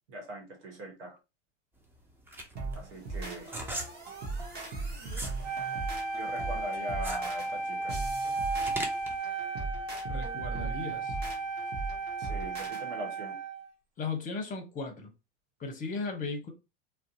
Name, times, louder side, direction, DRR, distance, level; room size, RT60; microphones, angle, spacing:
voice 1, 0.1-1.2 2.7-3.6 6.1-8.0 12.2-13.3, right 1 dB, 75° right, 1.1 m, -41 dB
sound 1, 1.8-5.4 5.8-9.2, right 1 dB, 5° right, 0.4 m, -40 dB
sound 2, 2.6-12.8, right 3 dB, 30° right, 1.0 m, -38 dB
Wind instrument woodwind instrument, 5.4-13.7, right 3 dB, 55° right, 1.0 m, -35 dB
voice 2, 10.0-11.2 14.0-15.1 15.6-16.5, left 4 dB, 25° left, 0.7 m, -36 dB
2.6 x 2.1 x 2.5 m
hypercardioid pair, 90°, 35 cm